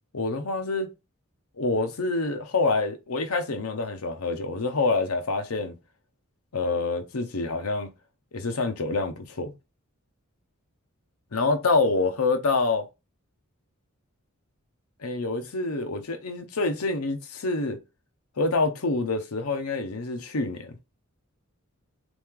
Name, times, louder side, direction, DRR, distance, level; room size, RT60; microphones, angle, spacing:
voice 1, 0.1-0.9 1.6-5.8 6.5-7.9 8.3-9.5 11.3-12.9 15.0-17.8 18.4-20.8, left 3 dB, 85° left, 0.8 m, -26 dB
3.5 x 3.1 x 3.6 m
head